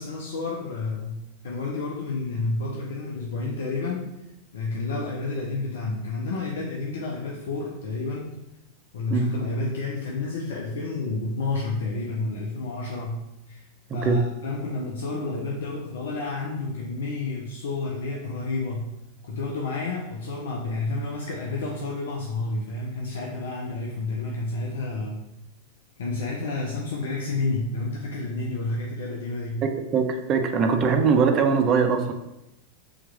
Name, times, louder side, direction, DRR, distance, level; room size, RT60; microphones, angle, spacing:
voice 1, 0.0-4.1 4.5-8.3 8.9-13.6 13.9-18.9 19.2-25.2 26.0-29.6, left 3 dB, 60° left, -2 dB, 0.6 m, -30 dB
voice 2, 13.9-14.2 29.6-32.1, right 5 dB, 30° right, 5 dB, 0.4 m, -22 dB
3.5 x 3.0 x 3.6 m, 0.89 s
figure-of-eight pair, 90°, 0 cm